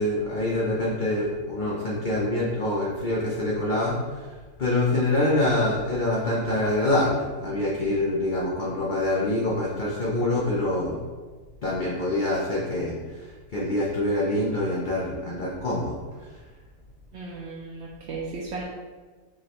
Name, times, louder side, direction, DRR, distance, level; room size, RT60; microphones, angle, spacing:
voice 1, 0.0-4.3 4.6-11.0 11.6-16.0, left 1 dB, 85° left, -5 dB, 0.4 m, -25 dB
voice 2, 17.1-18.6, right 4 dB, 70° right, -4 dB, 0.6 m, -35 dB
4.8 x 3.1 x 2.9 m, 1.4 s
omnidirectional pair, 1.7 m